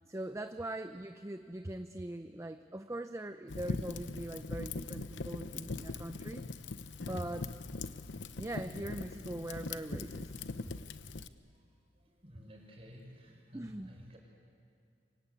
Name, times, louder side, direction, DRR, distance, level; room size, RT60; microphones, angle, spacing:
voice 1, 0.1-6.4 7.0-7.5 8.4-10.5 13.5-14.0, right 1 dB, 15° right, 8 dB, 0.6 m, -41 dB
Fire, 3.5-11.3, left 3 dB, 85° left, 0.9 m, -41 dB
voice 2, 11.9-14.2, equal, 30° right, 0 dB, 6.2 m, -53 dB
27.5 x 24.5 x 8.4 m, 2.3 s
head